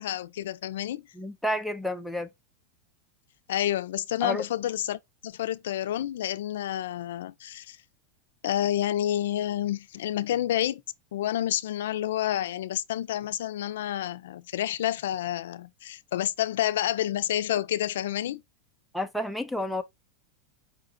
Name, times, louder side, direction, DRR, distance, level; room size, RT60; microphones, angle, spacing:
voice 1, 0.0-1.0 3.5-7.8 8.4-10.8 11.1-18.4, left 12 dB, 85° left, 0.3 m, -29 dB
voice 2, 1.1-2.3 4.2-4.4 18.9-19.8, left 1 dB, ahead, 0.3 m, -30 dB
4.8 x 2.6 x 3.7 m
supercardioid pair, 175°, 0 cm